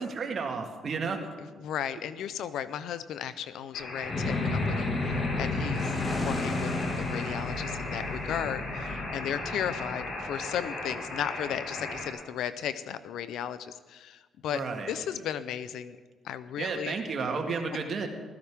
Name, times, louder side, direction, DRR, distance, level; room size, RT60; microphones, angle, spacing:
voice 1, 0.0-1.3 14.5-14.9 16.6-18.1, right 4 dB, 50° right, 3 dB, 1.8 m, -32 dB
voice 2, 1.4-6.7 7.0-14.6 14.9-16.0 16.2-17.0, left 9 dB, 80° left, 14 dB, 0.6 m, -35 dB
sound 1, 3.7-12.1, left 2 dB, 65° left, 4.7 m, -37 dB
sound 2, 4.1-10.6, left 3 dB, 40° left, 1.9 m, -32 dB
15.5 x 13.5 x 3.6 m, 1.3 s
cardioid pair, 90°, 0 cm